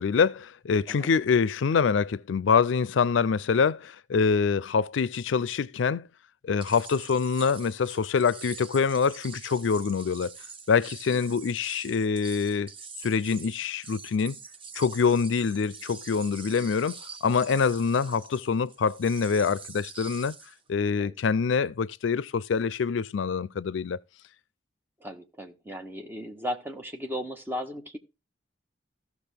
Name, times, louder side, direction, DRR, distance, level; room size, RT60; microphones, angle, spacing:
voice 1, 0.0-6.1 6.4-10.3 10.7-12.7 13.0-14.4 14.7-20.4 20.7-24.0, left 5 dB, 80° left, 0.4 m, -25 dB
sound 1, 6.6-20.6, right 5 dB, 30° right, 1.2 m, -45 dB
voice 2, 25.0-28.0, equal, 10° right, 1.3 m, -36 dB
15.5 x 6.2 x 3.4 m
head